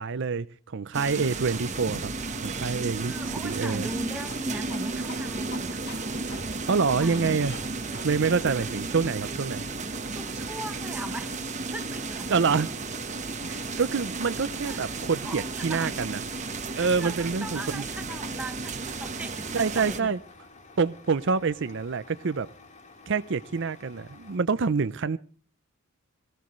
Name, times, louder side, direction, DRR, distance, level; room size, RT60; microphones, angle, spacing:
voice 1, 0.0-2.1 2.4-3.9 6.7-7.6 8.0-9.7 12.3-12.7 13.4-16.2 16.7-17.8 19.5-20.2 20.8-22.5 23.1-25.2, right 5 dB, 60° right, 0.6 m, -27 dB
sound 1, 0.9-20.0, right 3 dB, 35° right, 1.1 m, -33 dB
sound 2, 1.9-9.1, left 2 dB, 50° left, 2.1 m, -47 dB
voice 2, 2.9-5.8 6.5-7.4 10.1-11.4 11.7-12.4 14.7-16.0 16.7-20.2, right 1 dB, 5° right, 1.0 m, -39 dB
Truck, 12.4-24.4, left 3 dB, 35° left, 2.1 m, -52 dB
22.0 x 15.5 x 3.1 m
head